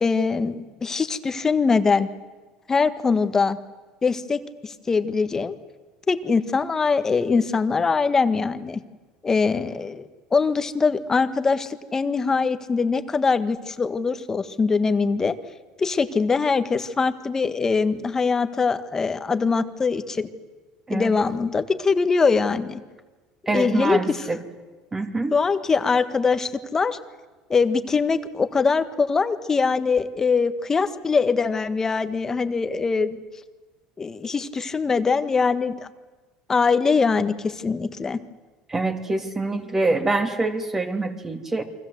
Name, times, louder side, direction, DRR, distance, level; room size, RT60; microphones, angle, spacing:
voice 1, 0.0-2.1 2.7-3.6 4.0-5.5 6.1-8.8 9.2-15.3 15.8-20.3 20.9-22.8 23.5-24.2 25.3-27.0 27.5-33.2 34.0-35.9 36.5-38.2, left 4 dB, 20° left, 10 dB, 1.6 m, -22 dB
voice 2, 23.5-24.4 24.9-25.3 38.7-41.6, right 2 dB, 15° right, 6 dB, 3.0 m, -25 dB
29.0 x 24.5 x 8.0 m, 1.3 s
supercardioid pair, 115°, 2 cm